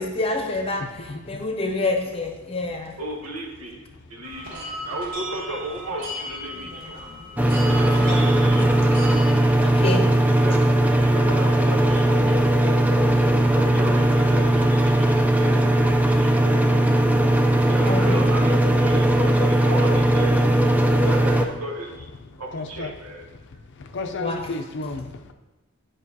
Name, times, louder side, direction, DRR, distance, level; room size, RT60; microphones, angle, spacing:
voice 1, 0.0-0.8 1.3-2.9 7.7-8.2 8.6-8.7 9.6-10.0 17.9-18.1 24.2-24.4, left 2 dB, 25° left, 3 dB, 0.8 m, -27 dB
voice 2, 0.8-1.2 22.5-22.9 23.9-25.1, left 3 dB, 55° left, 6 dB, 0.5 m, -32 dB
voice 3, 3.0-7.0 7.6-8.8 9.9-12.3 13.5-16.8 17.7-20.4 21.0-22.1 22.4-23.3, right 1 dB, 80° right, 0 dB, 1.2 m, -35 dB
sound 1, 4.2-9.3, right 1 dB, 45° right, 2.1 m, -35 dB
sound 2, 7.4-21.5, right 1 dB, 5° right, 0.3 m, -18 dB
9.5 x 5.4 x 2.7 m, 1.1 s
head